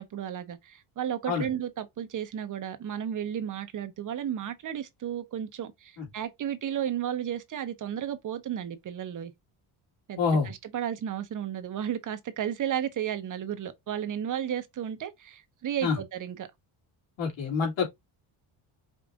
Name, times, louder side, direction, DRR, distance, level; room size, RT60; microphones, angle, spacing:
voice 1, 0.0-9.3 10.1-16.5, right 9 dB, 40° right, 0.7 m, -33 dB
voice 2, 10.2-10.5 15.8-16.0 17.2-17.9, left 5 dB, 65° left, 2.8 m, -26 dB
5.2 x 2.5 x 3.5 m
cardioid pair, 140°, 48 cm